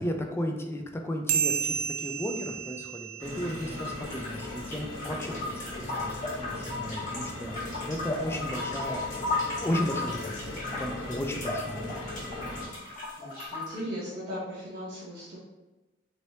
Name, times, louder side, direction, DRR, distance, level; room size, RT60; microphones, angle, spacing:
voice 1, 0.0-9.0 9.6-10.5 10.8-12.1, equal, 15° left, 3 dB, 0.3 m, -35 dB
sound 1, 1.3-4.1, right 7 dB, 80° right, 0.3 m, -32 dB
sound 2, 3.2-12.7, left 1 dB, 90° left, 1.0 m, -39 dB
sound 3, 3.2-13.8, left 2 dB, 45° left, 1.2 m, -36 dB
voice 2, 13.2-15.4, equal, 50° right, -10 dB, 0.8 m, -37 dB
3.1 x 3.0 x 2.7 m, 1.1 s
head